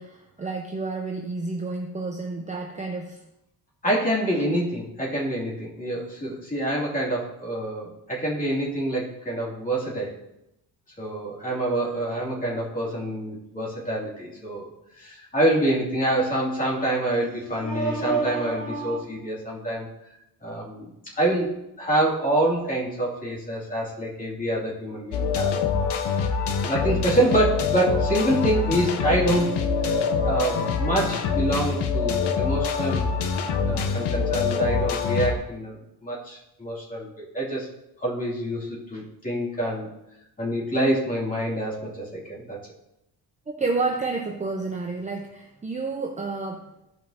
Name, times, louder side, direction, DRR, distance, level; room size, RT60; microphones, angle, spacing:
voice 1, 0.0-3.2 26.9-27.0 43.5-46.7, right 3 dB, 20° right, 2 dB, 0.6 m, -30 dB
voice 2, 3.8-10.1 11.0-14.7 15.0-19.9 20.4-25.5 26.7-29.5 30.2-33.1 33.7-37.7 38.0-39.9 40.4-42.6, right 1 dB, 20° left, -5 dB, 2.8 m, -26 dB
sound 1, 25.1-35.3, left 5 dB, 85° left, 0.9 m, -25 dB
14.5 x 5.4 x 2.9 m, 0.86 s
cardioid pair, 145°, 40 cm